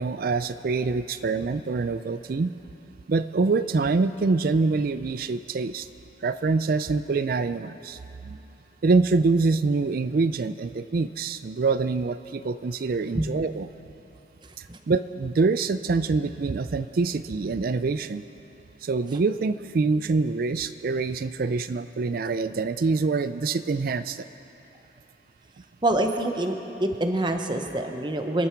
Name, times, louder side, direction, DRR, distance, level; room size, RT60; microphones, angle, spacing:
voice 1, 0.0-2.5 3.1-5.9 6.2-8.5 8.8-13.7 14.6-18.2 18.8-24.3, right 4 dB, 50° right, 13 dB, 0.4 m, -25 dB
voice 2, 25.8-28.5, right 1 dB, 25° right, 5 dB, 0.9 m, -26 dB
27.0 x 11.0 x 4.6 m, 3.0 s
head